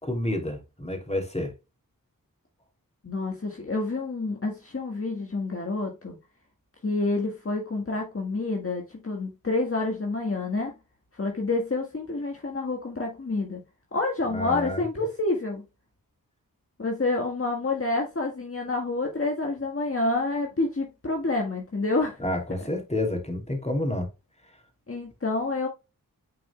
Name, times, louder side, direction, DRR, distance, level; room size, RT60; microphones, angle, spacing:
voice 1, 0.0-1.5 14.3-14.8 22.2-24.1, left 1 dB, 20° left, 2.8 m, -29 dB
voice 2, 3.0-6.2 6.8-10.7 11.1-13.6 13.9-15.6 16.8-22.2 24.9-25.7, left 3 dB, 40° left, 1.6 m, -28 dB
9.9 x 4.9 x 2.3 m
cardioid pair, 40°, 35 cm